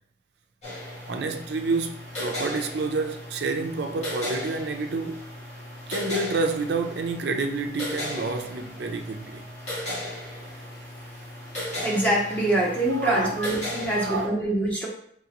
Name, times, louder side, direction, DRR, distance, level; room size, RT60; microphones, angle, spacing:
sound 1, 0.6-14.2, left 1 dB, 35° left, 1.5 m, -36 dB
voice 1, 1.1-5.2 5.9-9.4 12.9-13.5 13.9-14.3, right 3 dB, 55° right, 0.4 m, -29 dB
voice 2, 11.7-14.9, right 1 dB, 10° left, 0.8 m, -25 dB
3.7 x 3.6 x 2.9 m
head